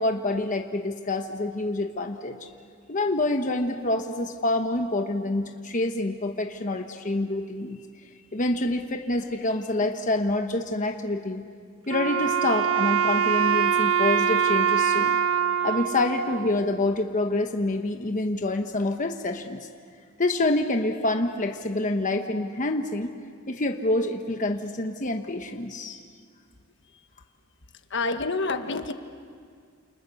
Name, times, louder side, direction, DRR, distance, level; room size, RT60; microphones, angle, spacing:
voice 1, 0.0-2.4 2.9-7.8 8.3-11.4 11.9-15.2 15.6-19.7 20.2-23.1 23.5-26.0, left 2 dB, 40° left, 4 dB, 1.1 m, -27 dB
Wind instrument woodwind instrument, 11.9-17.1, right 7 dB, 75° right, 1.3 m, -24 dB
voice 2, 27.9-28.9, left 3 dB, 60° left, 8 dB, 1.4 m, -27 dB
30.0 x 28.5 x 7.0 m, 2.1 s
head